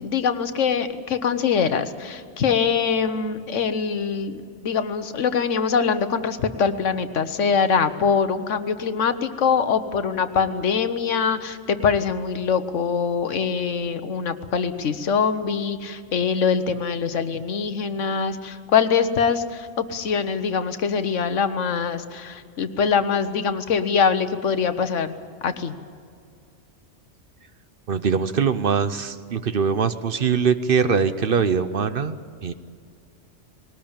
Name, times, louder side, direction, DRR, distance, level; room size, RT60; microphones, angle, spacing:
voice 1, 0.0-4.3 4.6-25.1 25.4-25.7, left 6 dB, 80° left, 11 dB, 1.4 m, -23 dB
voice 2, 27.9-32.2 32.4-32.5, right 6 dB, 55° right, 11 dB, 0.9 m, -22 dB
20.5 x 18.5 x 8.8 m, 2.2 s
omnidirectional pair, 1.2 m